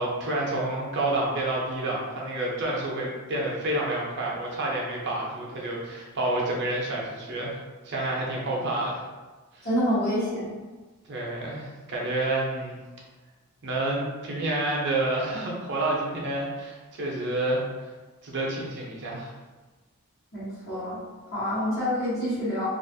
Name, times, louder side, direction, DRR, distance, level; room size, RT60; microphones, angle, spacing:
voice 1, 0.0-7.6 7.8-9.0 9.5-9.7 11.1-12.8 13.6-17.7 18.2-19.3, right 2 dB, 50° right, -3 dB, 0.6 m, -29 dB
voice 2, 9.6-10.5 20.3-21.0 21.3-22.7, equal, 45° left, -11 dB, 1.0 m, -27 dB
2.5 x 2.4 x 2.6 m, 1.3 s
head